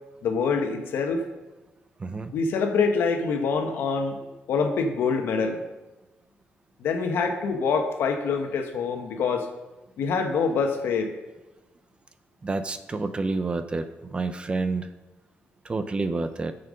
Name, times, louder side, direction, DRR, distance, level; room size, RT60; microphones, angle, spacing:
voice 1, 0.2-1.2 2.3-4.2 4.5-5.6 6.8-9.5 10.0-11.2, left 5 dB, 80° left, 4 dB, 1.3 m, -25 dB
voice 2, 2.0-2.3 12.4-14.9 15.6-16.5, right 3 dB, 25° right, 10 dB, 0.7 m, -29 dB
10.5 x 6.9 x 5.2 m, 1.1 s
cardioid pair, 100°, 4 cm